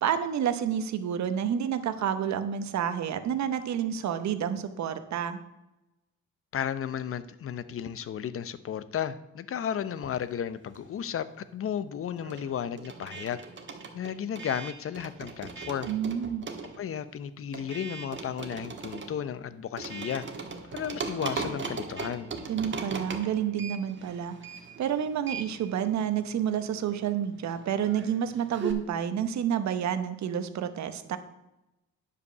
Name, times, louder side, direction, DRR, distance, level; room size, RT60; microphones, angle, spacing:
voice 1, 0.0-5.4 15.8-16.4 22.5-24.4 24.8-31.2, right 9 dB, 65° right, 10 dB, 1.0 m, -29 dB
voice 2, 6.5-13.4 13.9-15.9 16.8-20.2 20.7-22.3, left 8 dB, 45° left, 14 dB, 0.7 m, -34 dB
sound 1, 9.9-11.2 11.4-28.7, right 4 dB, 40° right, 1.4 m, -40 dB
9.8 x 5.1 x 6.7 m, 0.95 s
cardioid pair, 90°, 30 cm